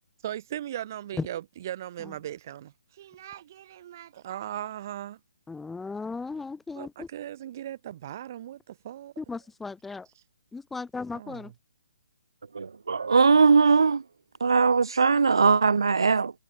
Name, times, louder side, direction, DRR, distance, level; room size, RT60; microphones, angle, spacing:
voice 1, 0.2-5.2 6.7-9.1 11.1-11.5, right 11 dB, 40° right, 3.4 m, -38 dB
voice 2, 5.5-7.1 9.2-10.1 10.5-11.5, left 4 dB, 5° left, 0.9 m, -37 dB
voice 3, 12.5-14.0 14.4-16.3, right 5 dB, 70° right, 0.3 m, -20 dB
figure-of-eight pair, 135°, 3 cm